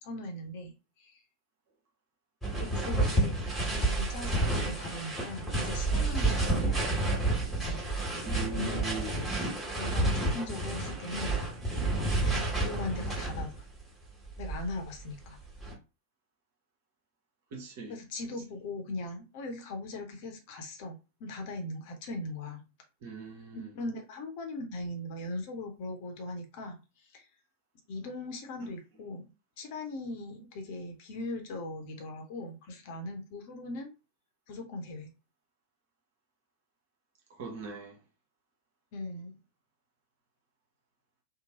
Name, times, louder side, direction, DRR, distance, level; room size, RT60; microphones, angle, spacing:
voice 1, 0.0-0.7 1.0-1.2 2.6-3.4 3.6-6.8 8.5-8.9 9.8-11.4 12.2-13.5 14.4-15.4 17.9-22.6 23.5-26.8 27.1-27.2 27.9-29.3 29.6-33.9 34.5-35.1 38.9-39.4, left 2 dB, 45° left, 0.8 m, -39 dB
sound 1, 2.4-13.7 14.3-15.7, right 2 dB, ahead, 1.5 m, -30 dB
voice 2, 8.2-9.2 17.5-17.9 23.0-23.8 28.6-28.7 37.3-38.0, right 4 dB, 50° right, 1.0 m, -40 dB
2.9 x 2.1 x 2.9 m
figure-of-eight pair, 90°, 0 cm